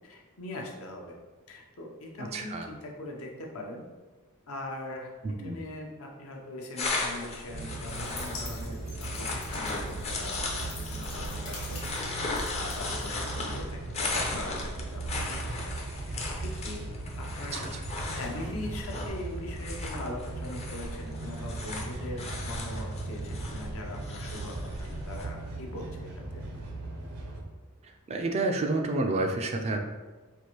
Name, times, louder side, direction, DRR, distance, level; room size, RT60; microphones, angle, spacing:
voice 1, 0.0-1.1 1.5-3.8 4.5-5.1 5.4-11.8 12.5-15.7 16.4-16.8 17.2-17.6 18.1-26.5, left 1 dB, 65° left, 0 dB, 0.7 m, -41 dB
voice 2, 2.2-2.7 5.2-5.6 17.5-17.8 28.1-29.8, right 2 dB, 30° right, 4 dB, 0.3 m, -29 dB
sound 1, 6.8-25.3, left 3 dB, 30° left, 0.5 m, -37 dB
sound 2, 7.5-27.4, right 2 dB, 80° right, 0.7 m, -38 dB
sound 3, 7.9-13.6, left 3 dB, 85° left, 1.1 m, -46 dB
4.5 x 2.5 x 2.9 m, 1.3 s
head